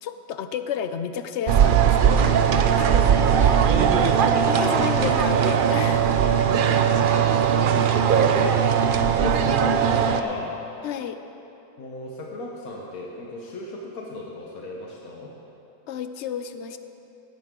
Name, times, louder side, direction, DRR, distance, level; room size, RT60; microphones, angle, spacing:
voice 1, 0.0-3.0 3.3-3.7 4.5-6.1 10.8-11.2 15.9-16.8, left 8 dB, 65° left, 10 dB, 0.8 m, -32 dB
sound 1, 1.5-10.2, right 7 dB, 65° right, 0.5 m, -19 dB
voice 2, 3.6-4.7 6.4-6.9 7.7-8.1 8.4-8.6 9.0-10.6 11.8-15.3, left 2 dB, 85° left, -2 dB, 1.6 m, -36 dB
17.0 x 10.5 x 3.7 m, 2.9 s
omnidirectional pair, 1.5 m